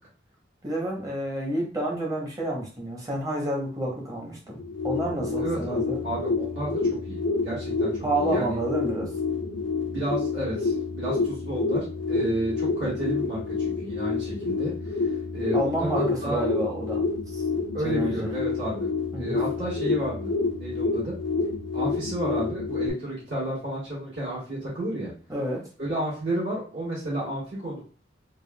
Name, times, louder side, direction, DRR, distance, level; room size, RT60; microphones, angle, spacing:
voice 1, 0.6-4.6 4.8-6.0 8.0-9.1 12.2-12.3 15.5-17.4 17.8-18.3 19.1-19.4 25.3-25.6, right 1 dB, 20° right, -2 dB, 0.8 m, -29 dB
sound 1, 4.5-22.9, left 4 dB, 80° left, 0.5 m, -28 dB
voice 2, 5.4-6.8 7.1-7.2 7.4-7.9 8.2-8.6 9.9-14.7 15.3-16.4 17.7-18.9 19.2-20.3 20.6-21.1 21.7-25.1 25.8-27.8, right 1 dB, 65° right, -8 dB, 1.5 m, -31 dB
3.4 x 2.2 x 2.2 m, 0.39 s
head